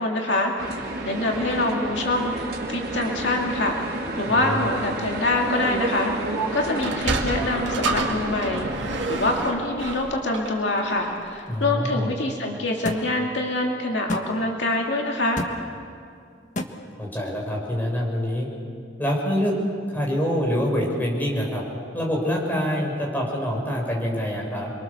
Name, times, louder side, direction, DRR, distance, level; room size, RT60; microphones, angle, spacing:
voice 1, 0.0-3.8 4.2-6.1 6.5-8.7 9.1-15.4, left 2 dB, 65° left, 0 dB, 2.6 m, -25 dB
sound 1, 0.6-9.5, right 1 dB, 55° right, 3.9 m, -30 dB
voice 2, 4.2-4.6 11.5-12.1 17.0-18.5 19.0-19.6 19.9-21.6 21.9-24.7, equal, 10° left, -2 dB, 6.0 m, -25 dB
Sliding door, 6.7-11.3, right 3 dB, 75° right, 2.6 m, -30 dB
sound 2, 12.8-13.0 14.1-14.3 15.4-15.5 16.6-16.7, left 1 dB, 40° left, 1.6 m, -28 dB
29.0 x 23.0 x 6.9 m, 2.3 s
head